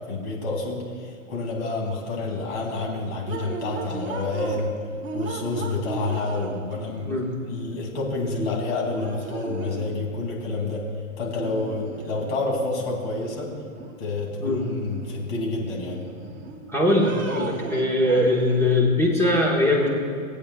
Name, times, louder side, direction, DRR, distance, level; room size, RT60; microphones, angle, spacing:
voice 1, 0.1-4.7 5.1-7.1 7.5-10.8 11.2-13.5 14.0-16.0, left 2 dB, 45° left, -1 dB, 2.9 m, -28 dB
sound 1, 3.3-4.7 5.0-6.9 8.4-8.5 8.9-10.0 11.4-12.4 12.7-13.9 14.4-15.3 15.7-16.6 17.0-18.8, right 3 dB, 25° right, 1.5 m, -37 dB
voice 2, 16.7-19.9, left 1 dB, 5° left, -4 dB, 1.3 m, -21 dB
19.5 x 8.5 x 2.4 m, 2.3 s
hypercardioid pair, 135°, 42 cm